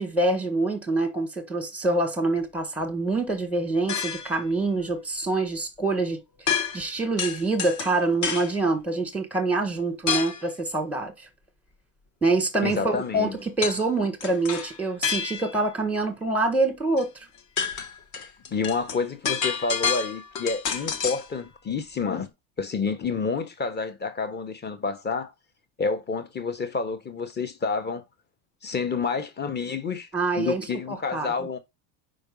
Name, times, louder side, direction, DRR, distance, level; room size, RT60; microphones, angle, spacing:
voice 1, 0.0-6.2 6.4-11.1 12.2-17.1 30.1-31.3, right 2 dB, 5° right, 1.6 m, -26 dB
sound 1, 3.9-4.4 6.5-6.9 7.2-8.6 10.1-10.5 13.6-13.8 14.2-15.6 17.0-17.1 17.4-21.3, left 6 dB, 40° left, 1.2 m, -29 dB
voice 2, 12.6-13.4 18.1-22.3 22.6-25.3 25.8-28.0 28.6-30.1 30.4-31.6, left 4 dB, 20° left, 1.3 m, -29 dB
5.2 x 4.3 x 5.5 m
supercardioid pair, 105°, 48 cm